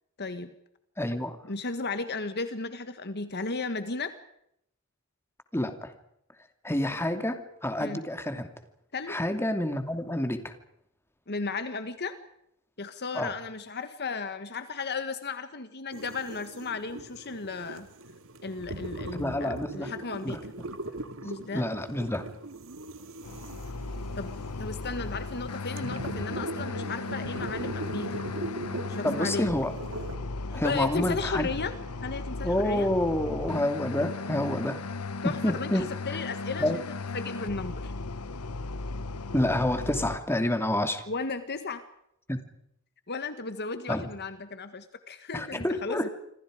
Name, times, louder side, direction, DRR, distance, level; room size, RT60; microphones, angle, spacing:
voice 1, 0.2-0.5 1.5-4.1 7.8-8.0 8.9-9.2 11.3-12.2 12.8-17.9 18.4-20.5 21.2-21.7 24.1-24.3 24.6-28.2 28.8-29.5 30.5-31.7 32.0-32.9 35.2-36.8 37.1-37.9 41.1-41.8 43.1-46.1, left 4 dB, 50° left, 10 dB, 1.6 m, -35 dB
voice 2, 1.0-1.4 5.5-5.9 6.6-8.5 9.1-10.5 13.1-13.3 19.1-19.9 20.2-20.4 21.5-22.3 29.0-29.7 30.5-31.5 32.4-34.8 35.2-35.9 36.6-36.8 39.3-41.0 42.3-42.4 43.9-44.0 45.3-46.1, left 1 dB, 10° left, 7 dB, 2.6 m, -28 dB
sound 1, 15.9-30.2, right 1 dB, 65° right, 2.2 m, -40 dB
sound 2, 23.2-40.2, left 3 dB, 85° left, 1.1 m, -36 dB
28.0 x 25.5 x 5.1 m, 0.75 s
head